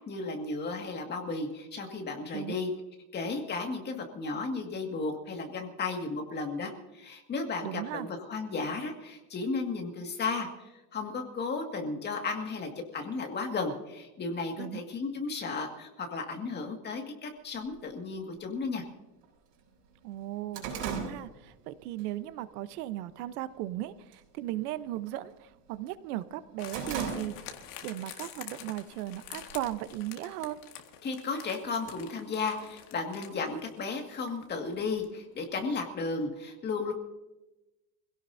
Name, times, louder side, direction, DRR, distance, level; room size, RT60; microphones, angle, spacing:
voice 1, 0.1-2.7 3.1-18.8 31.0-36.9, left 4 dB, 20° left, 3 dB, 2.1 m, -34 dB
voice 2, 7.6-8.1 14.6-14.8 20.0-27.3 27.8-30.6, right 14 dB, 80° right, 12 dB, 1.1 m, -37 dB
sound 1, 17.7-17.8 18.7-18.8 19.2-19.3 19.7-22.1 22.5-22.8 23.2-23.7 24.0-24.3 24.6-25.8 26.2-27.7 28.1-28.2 29.1-30.0, right 6 dB, 60° right, 6.8 m, -38 dB
sound 2, 26.6-35.2 35.4-35.5, left 10 dB, 45° left, 1.9 m, -47 dB
25.5 x 17.0 x 2.8 m, 1.0 s
supercardioid pair, 160°, 45 cm